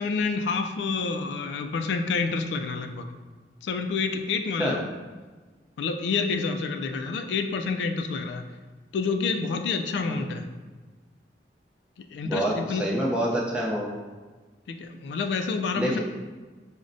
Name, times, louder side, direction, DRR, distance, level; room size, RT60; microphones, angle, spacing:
voice 1, 0.0-3.1 3.6-4.9 5.8-8.4 8.9-10.5 12.0-12.9 14.7-16.0, left 4 dB, 80° left, 5 dB, 0.3 m, -28 dB
voice 2, 12.2-13.9 15.8-16.0, equal, 5° right, -4 dB, 0.6 m, -27 dB
6.1 x 2.1 x 2.5 m, 1.3 s
head